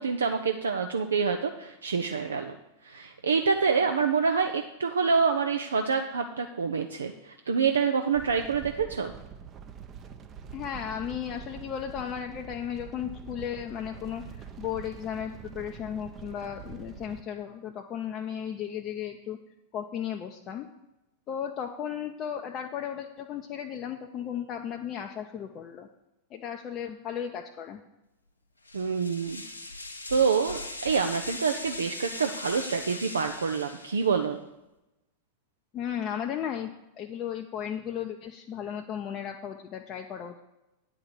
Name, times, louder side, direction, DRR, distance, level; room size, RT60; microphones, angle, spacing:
voice 1, 0.0-2.5 2.8-9.1 28.7-29.4 30.1-34.4, right 5 dB, 70° right, 6 dB, 0.5 m, -27 dB
sound 1, 8.1-17.2, right 7 dB, 30° right, 0.7 m, -45 dB
voice 2, 10.5-19.4 19.7-20.7 21.3-25.9 26.3-27.8 35.7-36.7 37.0-40.4, left 9 dB, 35° left, 3 dB, 0.6 m, -35 dB
sound 2, 28.6-34.2, left 2 dB, 80° left, 0.9 m, -39 dB
8.9 x 4.8 x 7.2 m, 0.95 s
figure-of-eight pair, 90°, 0 cm